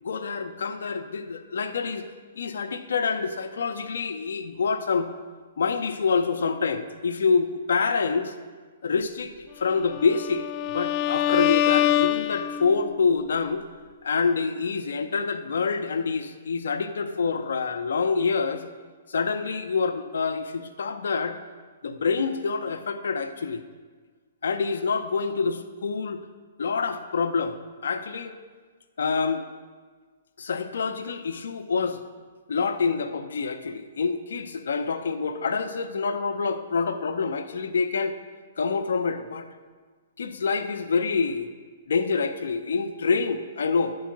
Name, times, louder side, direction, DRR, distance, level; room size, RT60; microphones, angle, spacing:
voice 1, 0.0-2.1 2.4-5.1 5.6-8.3 8.8-13.6 14.0-18.6 19.1-21.4 21.8-23.6 24.4-26.2 26.6-28.3 29.0-29.4 30.4-32.0 32.5-38.2 38.6-39.5 40.2-41.5 41.9-44.0, left 5 dB, 70° left, 9 dB, 0.6 m, -26 dB
Bowed string instrument, 9.8-12.9, left 12 dB, 35° left, 0.3 m, -24 dB
10.0 x 4.7 x 6.1 m, 1.5 s
hypercardioid pair, 125°, 0 cm